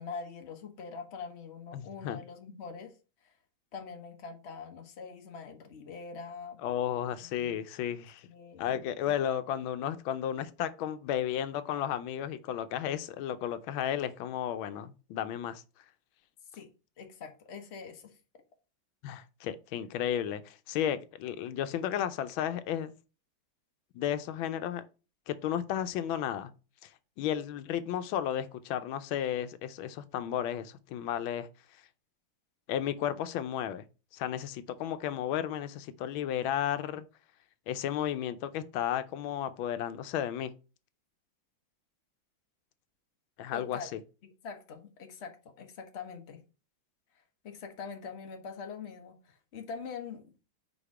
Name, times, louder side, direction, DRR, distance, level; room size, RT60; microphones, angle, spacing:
voice 1, 0.0-2.9 3.2-3.3 3.7-6.6 7.2-7.6 8.3-8.7 16.5-16.7 17.0-18.2 43.5-43.9 44.2-46.4 47.1-50.4, left 5 dB, 40° left, 1.1 m, -44 dB
voice 2, 1.7-2.2 6.6-8.3 8.6-15.6 19.0-22.9 23.9-24.8 25.3-26.5 26.8-26.9 27.2-31.5 32.7-33.8 34.1-37.0 37.7-40.5 43.4-44.0, left 10 dB, 90° left, 1.4 m, -33 dB
5.0 x 4.7 x 4.8 m
omnidirectional pair, 2.1 m